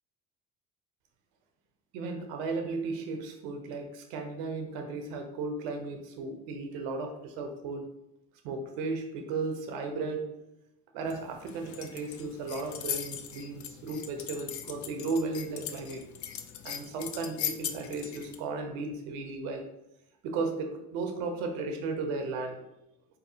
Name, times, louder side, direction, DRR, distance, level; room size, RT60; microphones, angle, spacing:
voice 1, 1.9-7.9 8.4-10.3 10.9-16.1 16.6-19.7 20.2-22.6, right 3 dB, 90° right, 4 dB, 0.7 m, -35 dB
sound 1, 11.1-18.4, left 9 dB, 50° left, 0.4 m, -40 dB
3.9 x 2.7 x 2.7 m, 0.85 s
supercardioid pair, 70°, 39 cm